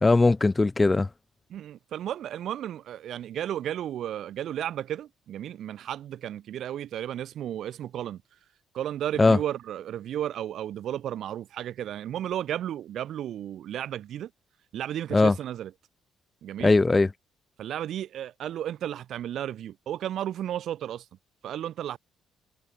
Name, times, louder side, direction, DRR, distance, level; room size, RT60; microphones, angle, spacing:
voice 1, 0.0-1.1 9.2-9.4 15.1-15.3 16.6-17.1, left 3 dB, 15° left, 0.4 m, -19 dB
voice 2, 1.5-8.2 8.7-14.3 14.7-15.7 16.4-16.7 17.6-21.0 21.4-22.0, right 11 dB, 55° right, 1.7 m, -33 dB
cardioid pair, 165°, 0 cm